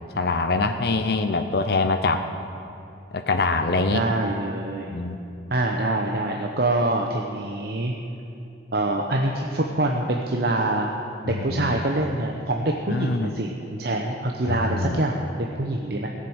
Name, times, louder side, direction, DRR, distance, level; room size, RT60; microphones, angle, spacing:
voice 1, 0.1-2.3 3.1-4.0 4.9-5.2 11.3-11.8 12.9-13.3 14.4-15.0, left 3 dB, 55° left, 6 dB, 0.6 m, -24 dB
voice 2, 3.9-4.9 5.5-7.9 8.7-10.9 11.2-16.1, right 2 dB, 55° right, 1 dB, 0.9 m, -25 dB
17.0 x 7.6 x 8.0 m, 2.7 s
head